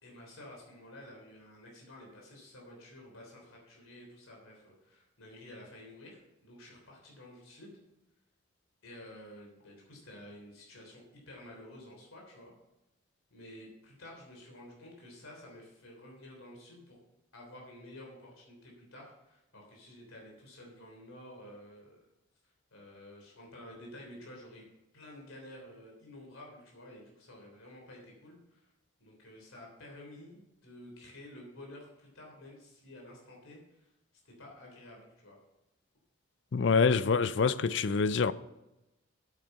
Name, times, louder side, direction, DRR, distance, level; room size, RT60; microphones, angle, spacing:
voice 1, 0.0-7.8 8.8-12.5 13.3-17.0 17.3-22.0 22.7-24.7 24.9-28.7 29.0-33.9 34.2-35.4, left 1 dB, 85° left, 3.3 m, -51 dB
voice 2, 36.5-38.3, left 5 dB, 60° left, 0.4 m, -26 dB
8.8 x 8.3 x 5.5 m
head